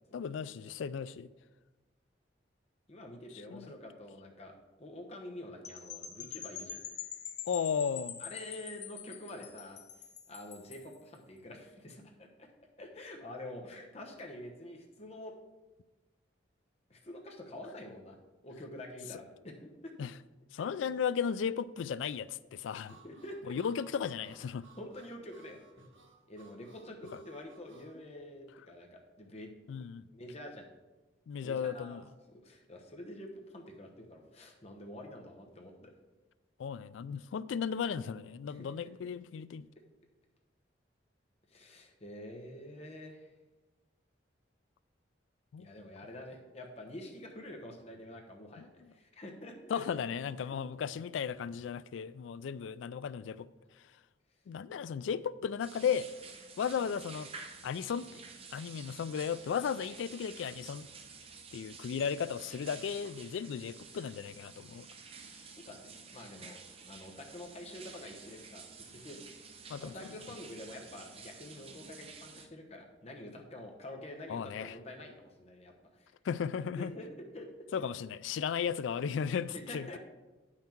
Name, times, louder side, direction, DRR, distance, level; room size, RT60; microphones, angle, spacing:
voice 1, 0.1-1.3 3.5-3.7 7.5-8.2 20.0-20.1 20.5-23.0 23.5-24.7 27.1-27.2 29.7-30.0 31.3-32.1 36.6-39.7 45.5-45.7 48.6-48.9 49.7-53.5 53.8-53.9 54.5-56.1 56.6-57.3 57.6-58.2 58.5-60.9 61.5-64.9 69.7-70.1 74.3-74.8 76.2-76.9 77.7-80.0, left 7 dB, 85° left, 0.3 m, -35 dB
voice 2, 2.9-4.5 4.8-6.8 8.2-9.8 10.3-12.5 12.8-15.4 16.9-18.2 18.4-19.9 23.0-23.5 24.8-25.9 26.3-29.5 30.1-30.7 31.4-32.0 32.4-35.9 38.4-38.7 41.5-43.3 45.6-49.9 50.4-50.5 65.7-66.6 66.9-68.6 68.9-69.2 69.6-76.1 76.8-77.7 79.5-80.0, left 1 dB, 35° left, 1.0 m, -47 dB
sound 1, 5.6-10.9, left 9 dB, 65° left, 0.7 m, -45 dB
Harmonica, 22.8-27.9, right 4 dB, 90° right, 1.3 m, -61 dB
sound 2, 55.6-72.5, right 5 dB, 30° right, 0.7 m, -51 dB
8.7 x 5.8 x 4.5 m
head